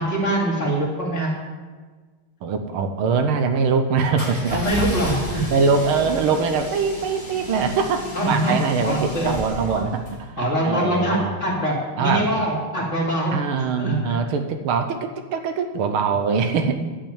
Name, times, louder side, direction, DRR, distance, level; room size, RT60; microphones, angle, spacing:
voice 1, 0.0-1.3 4.5-5.5 8.1-9.4 9.7-9.9 10.4-13.3 13.8-14.2 16.7-16.8, right 1 dB, 35° left, -3 dB, 3.1 m, -23 dB
voice 2, 2.4-4.8 5.3-11.3 12.0-12.5 12.8-12.9 13.3-16.8, right 5 dB, 80° right, 7 dB, 1.8 m, -23 dB
sound 1, 4.2-10.2, left 1 dB, 15° left, 2.0 m, -32 dB
12.0 x 5.8 x 8.8 m, 1.4 s
omnidirectional pair, 2.4 m